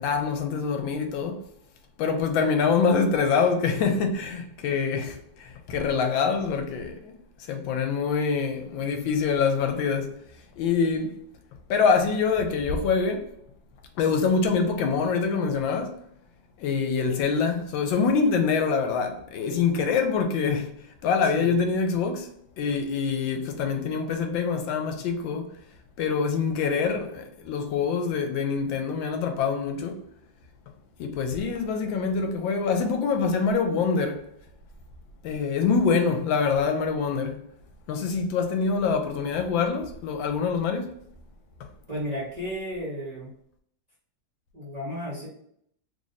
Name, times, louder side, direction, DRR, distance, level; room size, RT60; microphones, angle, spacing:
voice 1, 0.0-1.4 2.0-10.2 10.6-11.2 11.7-13.3 14.0-16.0 16.6-22.3 22.6-25.5 26.0-30.0 31.0-34.2 35.2-37.4 37.9-40.9, left 5 dB, 80° left, 1.3 m, -25 dB
voice 2, 41.9-43.3 44.5-45.3, equal, 30° right, 0.9 m, -33 dB
3.1 x 2.6 x 3.9 m
omnidirectional pair, 2.1 m